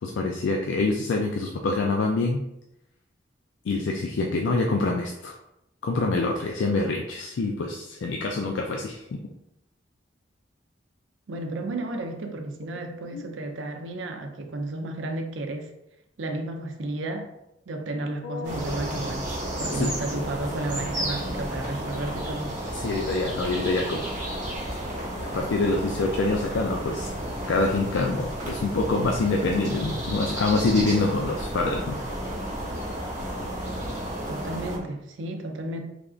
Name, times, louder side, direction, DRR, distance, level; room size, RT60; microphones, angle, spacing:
voice 1, 0.0-2.4 3.7-5.3 5.8-9.2 13.1-13.3 18.2-18.9 19.7-19.9 22.7-24.1 25.2-27.1 27.5-32.0, left 3 dB, 80° left, 0.4 m, -26 dB
voice 2, 11.3-15.7 16.2-17.3 17.7-19.3 19.6-22.5 34.3-35.8, right 2 dB, 85° right, 0.5 m, -32 dB
sound 1, 18.4-34.8, right 1 dB, 40° right, 1.1 m, -32 dB
3.7 x 3.4 x 2.4 m
head